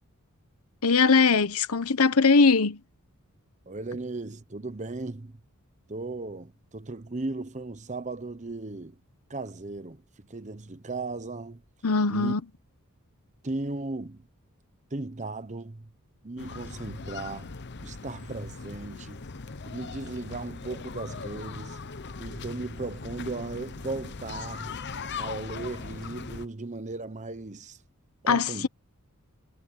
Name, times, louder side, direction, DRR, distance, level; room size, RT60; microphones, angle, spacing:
voice 1, 0.8-2.8 11.8-12.4 28.3-28.7, left 4 dB, 80° left, 1.1 m, -21 dB
voice 2, 3.7-5.4 5.9-9.0 9.3-11.6 12.1-12.3 13.4-14.3 14.9-15.9 16.2-17.5 17.8-19.2 19.6-21.8 22.2-24.7 25.2-27.8 28.2-28.7, right 3 dB, 35° right, 1.0 m, -36 dB
sound 1, 16.4-26.5, left 4 dB, 50° left, 0.9 m, -39 dB
head